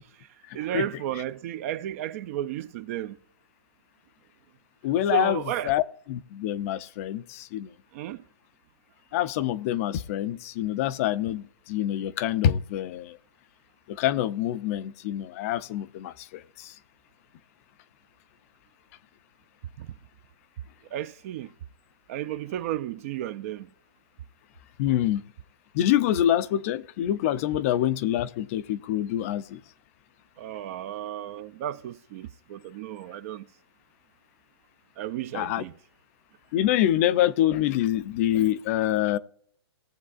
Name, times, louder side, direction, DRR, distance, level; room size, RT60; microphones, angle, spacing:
voice 1, 0.5-3.2 5.1-5.7 7.9-8.2 19.8-19.9 20.9-21.5 22.1-23.7 30.4-33.4 35.0-35.7, right 11 dB, 30° right, 0.4 m, -33 dB
voice 2, 4.8-5.4 5.7-5.8 6.1-7.7 9.1-13.2 13.9-16.7 24.8-25.2 25.7-29.6 35.3-35.6 36.5-39.2, left 12 dB, 30° left, 0.4 m, -26 dB
18.0 x 7.4 x 2.4 m
hypercardioid pair, 150°, 14 cm